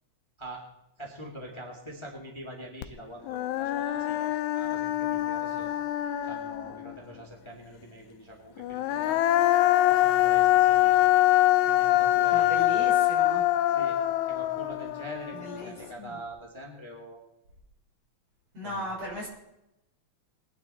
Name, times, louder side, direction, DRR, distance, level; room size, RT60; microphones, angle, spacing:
voice 1, 1.0-5.7 6.2-9.4 9.9-11.1 11.6-12.9 13.7-17.2 18.6-18.8, right 1 dB, 10° left, 0 dB, 2.3 m, -44 dB
Human voice, 2.8-2.9 3.3-6.9 8.6-15.9, left 14 dB, 85° left, 2.1 m, -24 dB
voice 2, 12.3-13.5 15.3-16.2 18.5-19.3, right 1 dB, 60° right, -3 dB, 7.4 m, -37 dB
21.0 x 11.5 x 4.3 m, 0.87 s
omnidirectional pair, 3.3 m